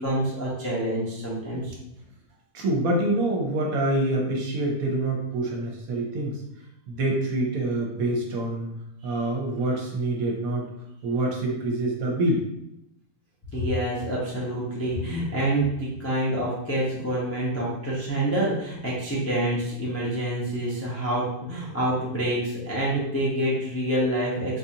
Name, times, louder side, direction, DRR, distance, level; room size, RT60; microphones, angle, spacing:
voice 1, 0.0-1.7 13.5-24.6, right 1 dB, 20° left, -7 dB, 0.4 m, -27 dB
voice 2, 2.5-6.4 6.9-8.7 9.0-10.7 11.0-12.5, right 1 dB, 65° right, 0 dB, 1.1 m, -26 dB
4.0 x 2.5 x 2.7 m, 0.83 s
omnidirectional pair, 1.7 m